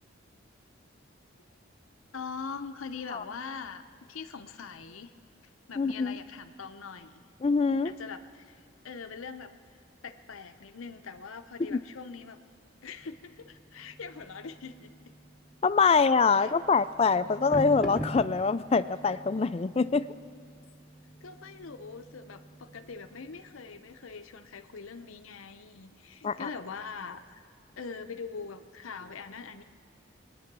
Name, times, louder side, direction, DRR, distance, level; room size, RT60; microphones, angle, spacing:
voice 1, 2.1-3.8 4.1-5.1 5.7-7.2 7.8-9.5 10.0-12.4 12.8-14.9 15.9-16.0 16.3-16.5 21.2-27.4 27.8-29.6, left 5 dB, 85° left, 8 dB, 0.7 m, -42 dB
voice 2, 5.8-6.2 7.4-7.9 11.7-11.8 15.6-20.1 26.2-26.5, left 5 dB, 30° left, 14 dB, 0.3 m, -24 dB
sound 1, 13.0-23.8, right 1 dB, ahead, 0.9 m, -44 dB
23.0 x 9.6 x 6.0 m, 2.2 s
head